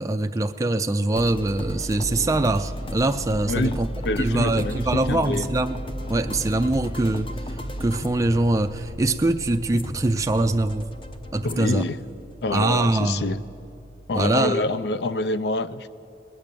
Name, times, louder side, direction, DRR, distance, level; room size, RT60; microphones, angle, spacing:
voice 1, 0.0-3.9 4.2-5.8 6.1-10.9 11.3-11.8 12.5-13.3 14.1-14.6, right 2 dB, 20° right, 7 dB, 0.3 m, -23 dB
sound 1, 1.2-14.5, equal, 30° left, 0.8 m, -34 dB
voice 2, 4.0-5.5 11.4-12.0 12.4-13.4 14.1-15.9, left 2 dB, 65° left, 15 dB, 0.4 m, -26 dB
20.0 x 8.9 x 6.8 m, 2.6 s
head